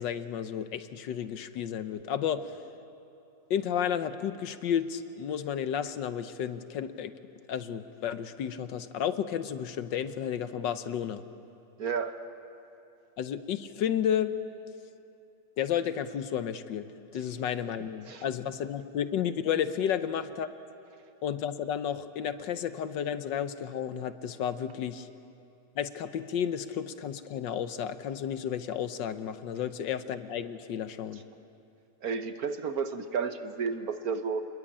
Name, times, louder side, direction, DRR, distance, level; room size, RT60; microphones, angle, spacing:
voice 1, 0.0-2.6 3.5-7.1 7.5-11.2 13.2-14.3 15.6-20.5 21.2-25.1 25.8-31.2, left 9 dB, 75° left, 11 dB, 1.5 m, -32 dB
voice 2, 11.8-12.2 18.1-18.2 32.0-34.5, right 5 dB, 55° right, 8 dB, 1.4 m, -32 dB
27.5 x 21.0 x 8.7 m, 2.8 s
omnidirectional pair, 2.0 m